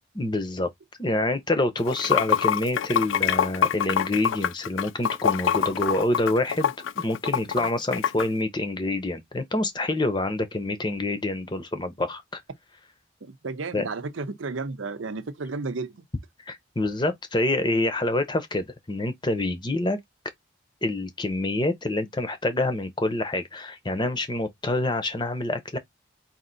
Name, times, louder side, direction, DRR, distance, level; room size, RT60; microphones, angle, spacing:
voice 1, 0.2-0.7 1.0-12.4 13.7-13.9 16.5-20.0 20.8-25.8, left 2 dB, 25° left, 0.7 m, -27 dB
Water / Sink (filling or washing), 1.8-8.3, left 8 dB, 80° left, 0.4 m, -25 dB
voice 2, 13.2-16.0, right 3 dB, 85° right, 0.7 m, -33 dB
4.4 x 2.7 x 3.9 m
head